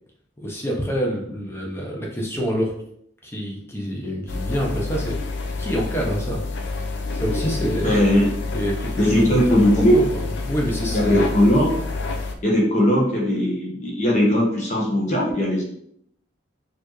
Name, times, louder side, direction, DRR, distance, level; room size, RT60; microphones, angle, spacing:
voice 1, 0.4-2.7 3.2-5.2 5.6-6.4 7.1-8.1 8.5-9.7 9.9-11.3, equal, 15° left, -2 dB, 0.7 m, -26 dB
sound 1, 4.3-12.3, left 3 dB, 65° left, 0.5 m, -28 dB
voice 2, 7.8-8.3 9.0-10.0 10.9-11.7 12.4-15.6, equal, 40° left, -3 dB, 1.1 m, -19 dB
4.3 x 2.8 x 3.1 m, 0.71 s
head